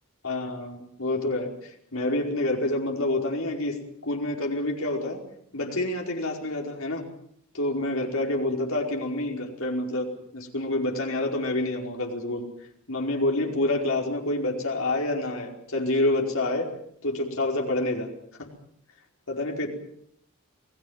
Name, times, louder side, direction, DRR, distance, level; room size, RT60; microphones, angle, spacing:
voice 1, 0.2-3.8 4.0-5.2 5.5-7.0 7.5-12.5 12.9-16.7 17.0-18.1 19.3-19.7, left 2 dB, 70° left, 1 dB, 5.0 m, -27 dB
29.0 x 19.0 x 7.3 m, 0.68 s
head